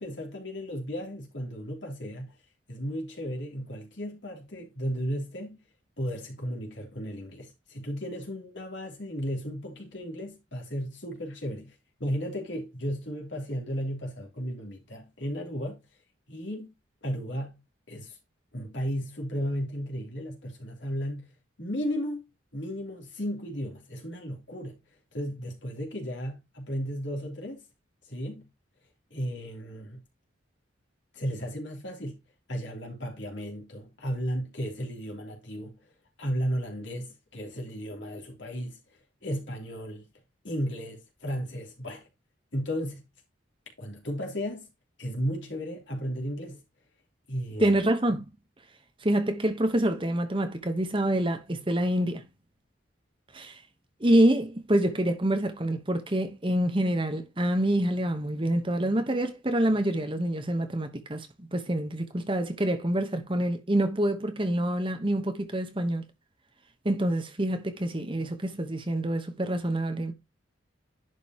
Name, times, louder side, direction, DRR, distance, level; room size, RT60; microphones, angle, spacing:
voice 1, 0.0-2.3 2.7-5.6 6.0-11.7 12.0-15.8 16.3-16.7 17.0-18.2 18.5-21.3 21.6-24.8 25.1-27.6 28.0-28.5 29.1-30.0 31.1-32.2 32.5-35.8 36.2-40.0 40.4-42.1 42.5-43.1 43.8-44.7 45.0-46.6 47.3-47.7, equal, 65° left, 3.2 m, -34 dB
voice 2, 47.6-48.2 49.0-52.2 53.3-53.6 54.0-66.0 66.8-70.1, right 1 dB, 25° right, 1.1 m, -26 dB
11.0 x 5.3 x 3.0 m
head